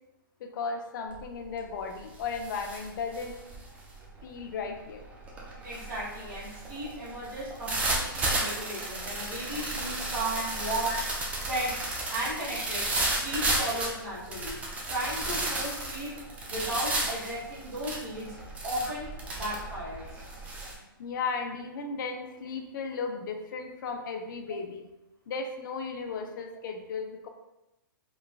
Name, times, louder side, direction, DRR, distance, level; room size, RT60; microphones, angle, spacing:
voice 1, 0.4-3.4 4.2-5.1 10.3-10.6 10.8-11.0 18.8-18.9 20.7-24.9 25.3-27.3, left 5 dB, 60° left, 5 dB, 0.4 m, -35 dB
sound 1, 1.1-1.4 1.8-20.7, right 2 dB, 10° right, 0.4 m, -33 dB
voice 2, 5.6-11.0 11.5-11.7 12.1-12.9 13.2-14.6 14.9-16.1 16.5-18.3 18.6-20.0, right 1 dB, 40° right, -11 dB, 1.2 m, -35 dB
3.2 x 2.1 x 2.3 m, 0.96 s
hypercardioid pair, 145°, 12 cm